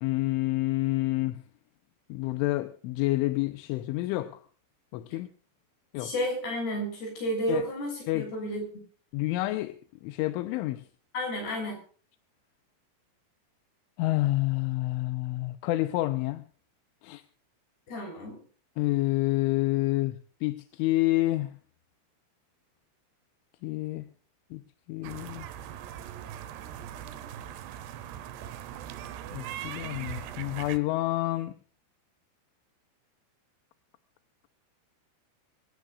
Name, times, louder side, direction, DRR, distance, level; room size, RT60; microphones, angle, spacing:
voice 1, 0.0-1.4 2.1-4.4 4.9-5.3 5.9-6.1 7.5-7.7 8.1-8.3 9.1-10.8 14.0-16.4 17.0-17.2 18.8-21.6 23.6-24.1 24.5-24.6 24.9-25.5 29.3-31.5, left 18 dB, 80° left, 3.2 m, -28 dB
voice 2, 6.0-8.8 11.1-11.8 17.9-18.4, equal, 55° left, 9.2 m, -32 dB
sound 1, 25.0-30.8, right 11 dB, 70° right, 2.9 m, -40 dB
23.0 x 17.5 x 2.5 m
omnidirectional pair, 5.7 m